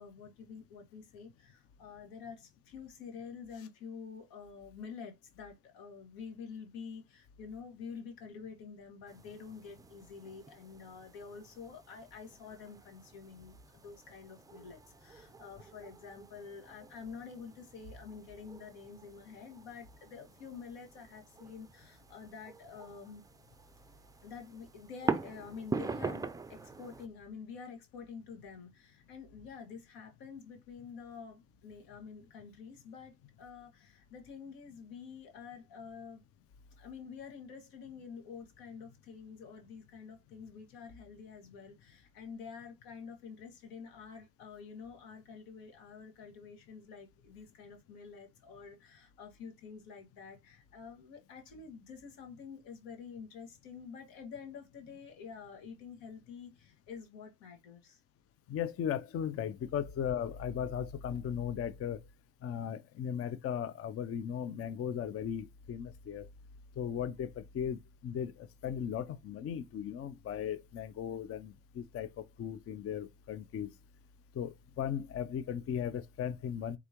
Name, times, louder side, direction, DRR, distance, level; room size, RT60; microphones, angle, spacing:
voice 1, 0.0-23.2 24.2-36.2 36.8-58.0, left 6 dB, 85° left, 1.9 m, -48 dB
sound 1, 9.1-27.1, right 4 dB, 10° right, 0.4 m, -44 dB
voice 2, 58.5-62.0 62.4-66.3 66.8-73.7 74.3-76.8, left 8 dB, 40° left, 0.5 m, -37 dB
4.8 x 3.6 x 2.9 m
cardioid pair, 100°, 35 cm